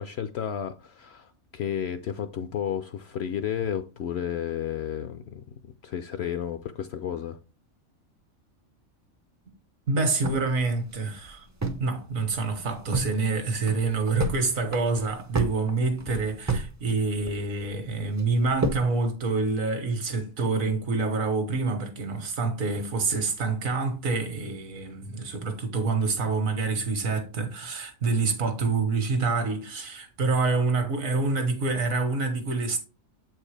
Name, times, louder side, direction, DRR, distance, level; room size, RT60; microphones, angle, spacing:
voice 1, 0.0-7.4, left 9 dB, 65° left, 0.7 m, -32 dB
voice 2, 9.9-32.8, right 3 dB, 75° right, 1.7 m, -27 dB
sound 1, 10.2-11.9 12.2-12.3 12.6-13.1 13.5-14.4 14.7-16.7 17.0-17.7 18.2-18.9, right 2 dB, 25° right, 0.3 m, -30 dB
7.7 x 4.6 x 3.2 m
omnidirectional pair, 1.4 m